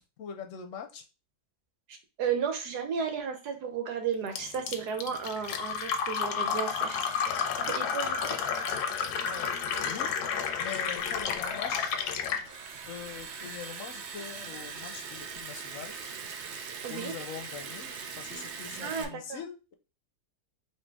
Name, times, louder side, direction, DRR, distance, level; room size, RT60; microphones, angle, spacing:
voice 1, 0.2-1.0 7.8-7.9 9.2-9.6 9.8-10.1 10.6-11.9 12.9-16.0 16.9-19.7, left 7 dB, 65° left, 5 dB, 1.0 m, -42 dB
voice 2, 1.9-8.3 16.8-17.1 18.8-19.4, right 6 dB, 85° right, 5 dB, 1.5 m, -34 dB
Fill (with liquid), 4.4-12.5, left 6 dB, 85° left, 1.1 m, -31 dB
Liquid, 11.0-19.0, right 6 dB, 65° right, 0.7 m, -42 dB
4.3 x 2.7 x 3.4 m, 0.30 s
omnidirectional pair, 1.7 m